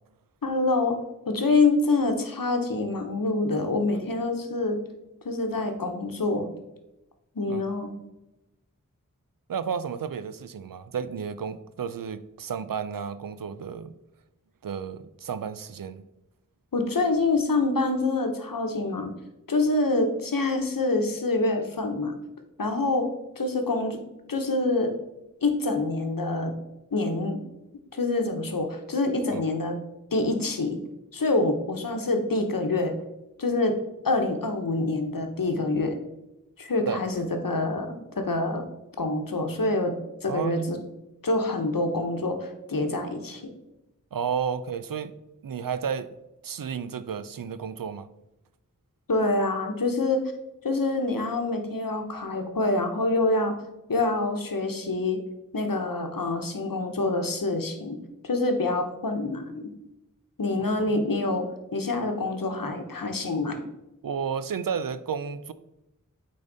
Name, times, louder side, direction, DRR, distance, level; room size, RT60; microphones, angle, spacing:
voice 1, 0.4-1.0 1.3-4.8 5.2-6.5 7.4-7.9 16.7-19.1 19.5-22.1 22.6-23.1 23.4-24.0 24.3-24.9 25.4-26.5 26.9-27.4 27.9-29.8 30.1-30.8 31.1-33.0 33.4-33.7 34.0-36.0 36.6-38.6 39.0-40.0 40.2-40.8 41.2-43.4 49.1-50.2 50.6-53.5 53.9-55.2 55.5-58.0 58.2-59.7 60.4-61.4 61.7-63.7, left 2 dB, 90° left, 5 dB, 0.9 m, -26 dB
voice 2, 9.5-13.9 14.6-16.0 29.3-29.4 36.9-37.0 40.3-40.7 44.1-45.1 45.4-46.1 46.4-48.1 60.9-61.0 64.0-65.5, right 7 dB, 85° right, 13 dB, 0.5 m, -32 dB
8.8 x 3.8 x 3.9 m, 0.93 s
wide cardioid pair, 40°, 33 cm